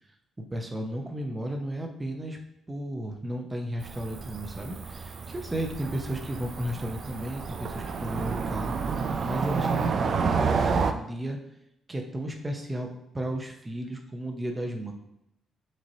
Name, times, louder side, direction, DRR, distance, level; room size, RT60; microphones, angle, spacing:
voice 1, 0.4-2.4 2.7-8.7 9.2-11.4 11.9-14.9, right 1 dB, 20° right, 3 dB, 0.7 m, -34 dB
Cricket / Motor vehicle (road), 3.8-10.9, right 5 dB, 55° right, 0.4 m, -30 dB
6.1 x 2.8 x 2.8 m, 0.82 s
cardioid pair, 90°, 0 cm